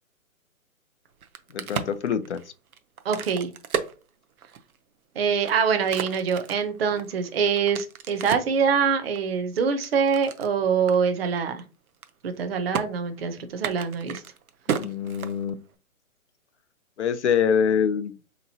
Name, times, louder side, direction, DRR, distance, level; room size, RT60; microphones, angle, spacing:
Crack, 1.1-4.8 5.3-8.6 9.1-10.5 10.9-11.0 11.3-11.6 11.9-12.4 12.7-12.8 13.5-15.7, right 7 dB, 85° right, 0.7 m, -33 dB
voice 1, 1.5-2.4 14.7-15.6 17.0-18.2, left 7 dB, 55° left, 0.5 m, -25 dB
voice 2, 3.0-3.5 5.2-11.6 12.2-14.2, right 6 dB, 45° right, 0.5 m, -24 dB
3.7 x 2.9 x 2.7 m
hypercardioid pair, 150°, 42 cm